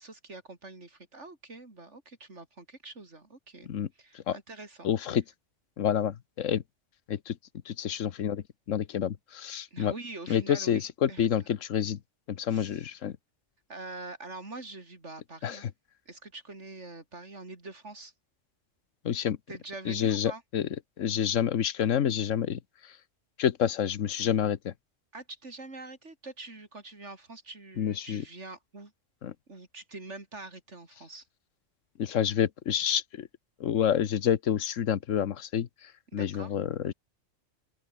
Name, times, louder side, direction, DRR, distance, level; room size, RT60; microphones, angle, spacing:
voice 1, 0.0-3.7 4.0-4.9 9.7-11.3 12.5-12.9 13.7-15.7 16.1-18.1 19.5-20.4 25.1-28.9 29.5-31.3 36.1-36.5, right 2 dB, 70° right, 4.2 m, -44 dB
voice 2, 4.8-5.2 5.8-6.6 7.1-7.4 7.6-9.9 10.3-12.0 12.3-13.2 15.4-15.7 19.0-19.4 19.8-20.7 21.0-23.0 23.4-24.7 27.8-28.2 29.2-29.3 32.0-33.3 33.6-36.9, left 9 dB, 90° left, 1.3 m, -28 dB
open air
omnidirectional pair, 1.3 m